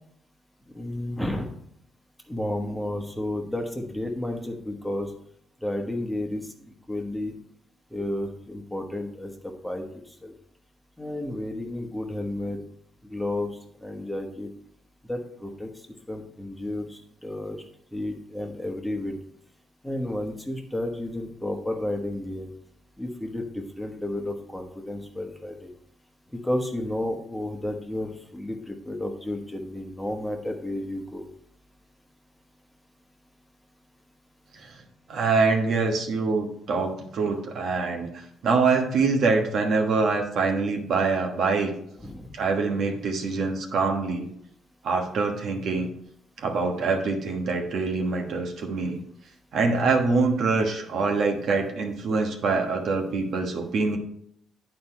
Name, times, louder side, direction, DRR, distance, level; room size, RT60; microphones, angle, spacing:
voice 1, 0.7-1.5 2.3-5.1 5.6-6.4 6.9-7.3 7.9-9.8 10.2-10.3 11.0-12.6 13.1-13.5 13.8-14.5 15.1-15.7 16.1-17.6 17.9-19.2 19.8-22.5 23.0-25.7 26.3-31.3 42.0-42.3, left 1 dB, 5° left, 2 dB, 1.2 m, -32 dB
voice 2, 35.1-41.7 42.3-44.3 44.8-45.9 46.4-49.0 49.5-54.0, right 4 dB, 65° right, 3 dB, 1.3 m, -25 dB
9.5 x 4.4 x 4.3 m, 0.70 s
cardioid pair, 90°, 0 cm